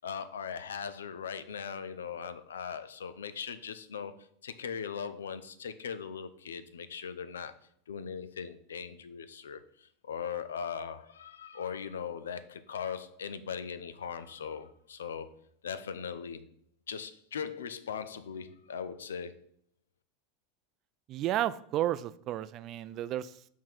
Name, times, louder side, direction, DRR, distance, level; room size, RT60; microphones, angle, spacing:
voice 1, 0.0-7.5 7.9-15.3 15.6-16.5 16.9-19.3, left 7 dB, 85° left, 0.4 m, -39 dB
voice 2, 21.1-23.5, right 12 dB, 45° right, 0.3 m, -32 dB
5.8 x 3.7 x 4.5 m
hypercardioid pair, 95°, 0 cm